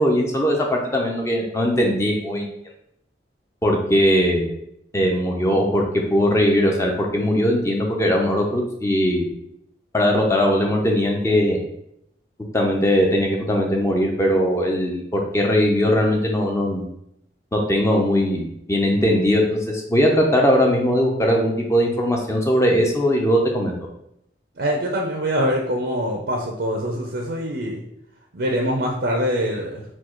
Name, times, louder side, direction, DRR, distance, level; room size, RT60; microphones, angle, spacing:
voice 1, 0.0-2.5 3.6-4.5 4.9-9.3 9.9-11.6 12.5-16.9 17.5-23.8, equal, 15° left, 0 dB, 0.5 m, -20 dB
voice 2, 24.6-27.8 28.3-30.0, equal, 65° right, 0 dB, 0.6 m, -24 dB
4.5 x 2.3 x 4.4 m, 0.77 s
head